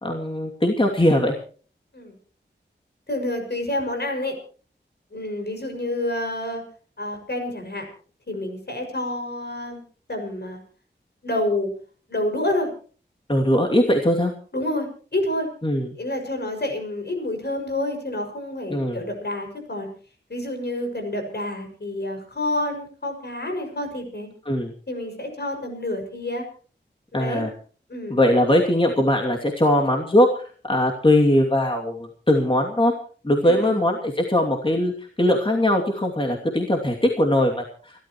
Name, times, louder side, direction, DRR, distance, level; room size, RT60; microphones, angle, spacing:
voice 1, 0.0-1.3 13.3-14.3 15.6-15.9 18.7-19.0 24.5-24.7 27.1-27.5 28.1-32.9 33.2-34.9 35.2-38.1, left 1 dB, 25° left, 1 dB, 2.7 m, -20 dB
voice 2, 3.1-4.3 5.1-6.6 7.0-7.9 8.3-9.8 10.1-10.6 11.2-11.7 12.1-12.7 14.5-15.5 16.0-19.9 20.3-24.3 24.9-26.5 27.1-27.4 27.9-28.2 33.4-33.8, left 1 dB, 60° left, 4 dB, 6.5 m, -28 dB
30.0 x 13.0 x 3.1 m, 0.41 s
wide cardioid pair, 75°, 19 cm